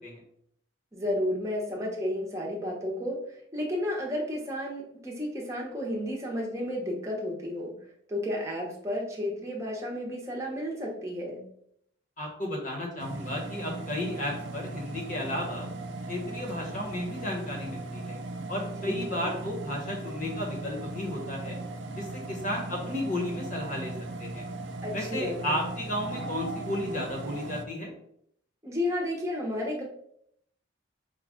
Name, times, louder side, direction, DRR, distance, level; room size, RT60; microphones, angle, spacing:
voice 1, 0.9-7.7 8.1-11.5 18.8-19.3 24.8-25.6 28.6-29.8, left 1 dB, 15° right, -2 dB, 0.8 m, -32 dB
voice 2, 12.2-15.7 16.1-18.2 18.5-21.6 22.0-23.9 24.2-24.4 24.9-27.9, left 1 dB, 40° left, 0 dB, 1.1 m, -33 dB
sound 1, 13.0-27.6, right 2 dB, 65° right, 0.4 m, -38 dB
5.1 x 2.3 x 3.6 m, 0.70 s
head